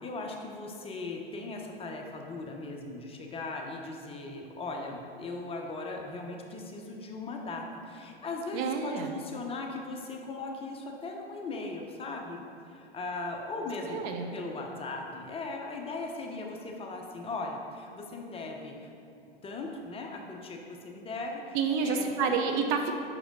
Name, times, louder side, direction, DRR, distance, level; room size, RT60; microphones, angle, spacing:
voice 1, 0.0-14.0 14.3-18.9 19.4-22.4, left 3 dB, 20° left, 1 dB, 0.7 m, -38 dB
voice 2, 8.5-9.1 13.9-14.3 21.5-22.9, right 5 dB, 40° right, 4 dB, 0.7 m, -29 dB
5.5 x 5.0 x 5.3 m, 2.5 s
hypercardioid pair, 100°, 30 cm